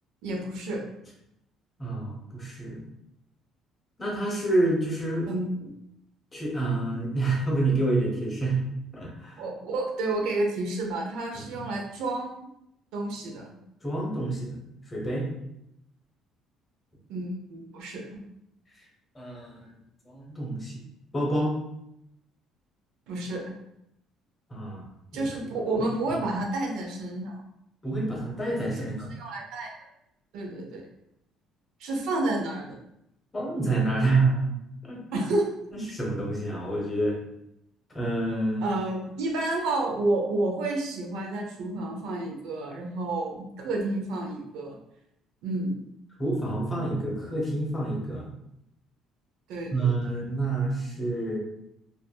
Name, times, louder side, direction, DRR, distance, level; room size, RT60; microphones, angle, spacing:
voice 1, 0.2-0.8 5.3-5.7 9.4-12.4 12.9-13.6 17.1-18.0 23.1-23.4 25.1-27.4 28.8-29.7 30.3-30.9 31.8-32.8 35.1-35.5 38.6-44.8 45.4-45.8 49.5-49.9, right 2 dB, 80° right, 1 dB, 0.5 m, -30 dB
voice 2, 1.8-2.8 4.0-5.3 6.3-8.6 8.9-9.4 11.3-11.7 13.8-14.6 14.9-15.3 19.1-19.7 20.1-20.8 21.1-21.5 24.5-24.8 25.1-25.3 26.1-26.2 27.8-29.1 33.3-34.5 34.8-35.0 35.7-37.2 37.9-38.6 46.2-48.3 49.7-51.4, right 2 dB, 20° left, -2 dB, 0.8 m, -28 dB
2.6 x 2.4 x 2.3 m, 0.80 s
cardioid pair, 115°, 0 cm